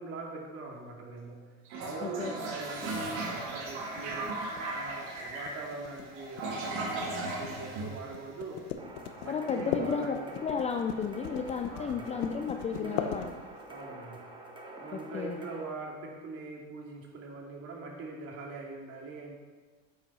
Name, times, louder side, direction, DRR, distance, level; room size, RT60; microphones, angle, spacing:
voice 1, 0.0-1.4 1.8-4.3 4.7-8.6 9.2-10.3 11.7-12.1 12.7-13.1 13.7-14.3 14.8-19.3, right 3 dB, 40° right, -1 dB, 2.6 m, -42 dB
Toilet flush, 1.7-8.6, right 2 dB, 75° right, 3.2 m, -37 dB
voice 2, 2.0-2.3 2.8-2.9 9.3-13.3 14.9-15.4, left 6 dB, 20° left, 5 dB, 0.4 m, -33 dB
sound 1, 2.8-13.8, left 9 dB, 80° left, 1.1 m, -39 dB
sound 2, 8.8-15.6, right 2 dB, 15° right, 1.3 m, -47 dB
8.8 x 7.9 x 5.6 m, 1.3 s
supercardioid pair, 135°, 36 cm